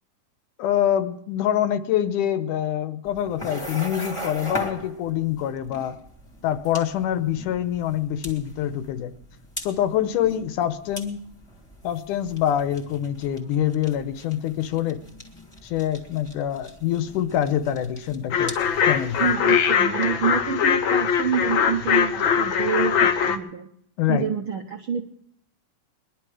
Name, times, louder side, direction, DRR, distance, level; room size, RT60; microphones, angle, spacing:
voice 1, 0.6-6.0 6.4-9.1 9.6-11.2 11.8-15.0 15.6-18.6 18.9-19.3 24.0-24.3, left 11 dB, 90° left, 11 dB, 2.4 m, -25 dB
sound 1, 3.0-19.3, equal, 10° left, 1.9 m, -40 dB
sound 2, 18.3-23.4, left 7 dB, 70° left, 1.1 m, -21 dB
voice 2, 19.2-23.7 24.1-25.0, right 7 dB, 80° right, 4 dB, 1.1 m, -27 dB
21.5 x 11.5 x 4.8 m, 0.70 s
omnidirectional pair, 3.6 m